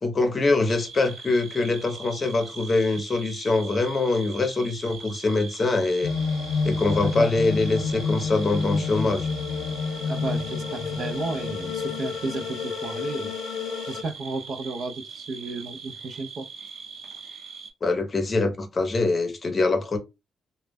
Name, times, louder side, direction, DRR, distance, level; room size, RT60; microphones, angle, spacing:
voice 1, 0.0-6.1 6.6-9.3 17.8-20.0, left 3 dB, 30° left, 0.7 m, -24 dB
sound 1, 0.7-17.7, right 6 dB, 75° right, 0.8 m, -41 dB
sound 2, 6.0-14.0, left 5 dB, 75° left, 0.3 m, -29 dB
voice 2, 7.0-7.4 10.1-13.3 13.8-16.4, right 3 dB, 55° right, 0.4 m, -33 dB
2.2 x 2.0 x 3.4 m
cardioid pair, 120°, 0 cm